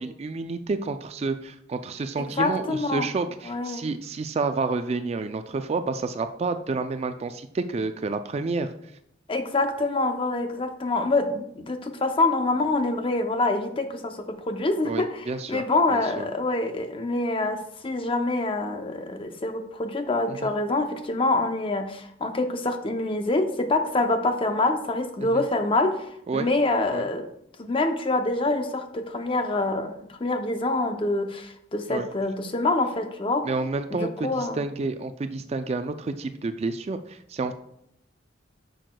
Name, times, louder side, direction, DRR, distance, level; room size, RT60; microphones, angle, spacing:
voice 1, 0.0-8.7 14.8-15.6 15.9-16.3 20.3-20.5 25.2-25.4 26.3-26.5 26.9-27.0 31.9-32.1 33.4-37.5, right 3 dB, 35° right, 9 dB, 0.3 m, -29 dB
voice 2, 2.4-3.1 3.5-3.8 9.3-27.3 27.6-29.9 30.2-33.5 33.9-34.6, left 2 dB, 30° left, 7 dB, 0.6 m, -26 dB
10.0 x 6.4 x 2.2 m, 0.76 s
head